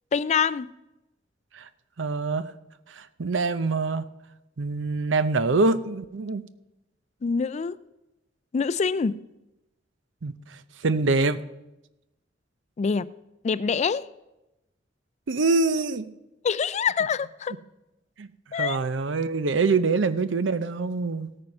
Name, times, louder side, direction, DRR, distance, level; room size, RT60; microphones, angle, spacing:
voice 1, 0.1-0.7 7.2-7.8 8.5-9.2 12.8-13.1 13.4-14.1 16.4-17.6 18.5-18.8, left 5 dB, 35° left, 0.3 m, -25 dB
voice 2, 2.0-2.5 2.9-4.0 4.6-6.4 10.2-11.4 15.3-16.1 18.2-18.3 18.6-21.3, right 3 dB, 85° right, 0.6 m, -25 dB
17.0 x 8.9 x 5.4 m
head